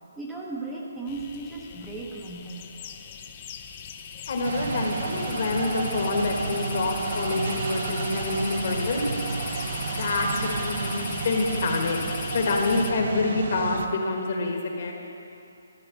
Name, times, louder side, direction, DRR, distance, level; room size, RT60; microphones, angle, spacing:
voice 1, 0.2-2.7, right 3 dB, 5° right, -4 dB, 0.7 m, -36 dB
sound 1, 1.1-12.9, left 8 dB, 25° left, 0.4 m, -39 dB
voice 2, 4.3-9.0 9.9-12.0 12.3-14.9, left 3 dB, 45° left, 1 dB, 1.4 m, -27 dB
sound 2, 4.4-13.9, right 4 dB, 50° right, 0.6 m, -32 dB
12.5 x 4.8 x 8.2 m, 2.7 s
hypercardioid pair, 170°, 0 cm